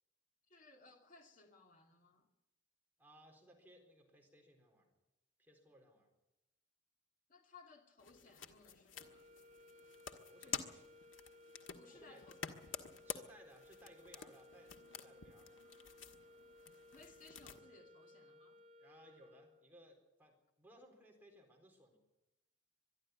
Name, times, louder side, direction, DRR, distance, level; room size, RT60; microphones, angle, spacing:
voice 1, 0.5-2.3 7.3-9.3 10.4-10.7 11.7-12.4 16.9-18.6, left 3 dB, 45° left, 2.6 m, -62 dB
voice 2, 3.0-4.9 5.4-6.1 10.2-10.8 11.9-12.2 13.0-15.6 18.8-22.0, right 1 dB, 10° right, 4.2 m, -63 dB
sound 1, 8.0-17.6, left 7 dB, 90° left, 1.7 m, -50 dB
sound 2, 8.9-19.8, left 2 dB, 40° right, 2.1 m, -62 dB
22.5 x 12.5 x 9.7 m
head